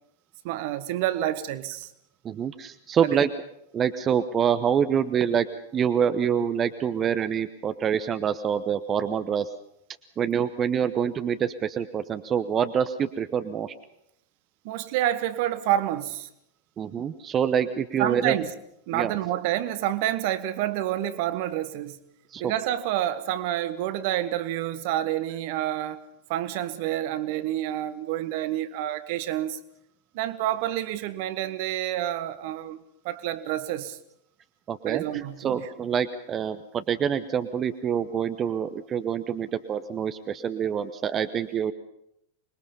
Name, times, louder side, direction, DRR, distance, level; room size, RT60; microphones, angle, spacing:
voice 1, 0.4-1.9 3.0-3.2 14.6-16.3 18.0-18.5 18.9-22.0 22.4-26.0 26.3-29.6 30.1-34.0 34.8-35.7, right 12 dB, 50° right, 1.4 m, -28 dB
voice 2, 2.2-3.3 3.7-5.5 5.7-9.5 10.2-13.7 16.8-18.3 18.9-19.1 22.3-22.5 34.7-35.0 35.4-41.7, right 8 dB, 25° right, 0.9 m, -26 dB
26.0 x 21.5 x 5.6 m
figure-of-eight pair, 90°, 0 cm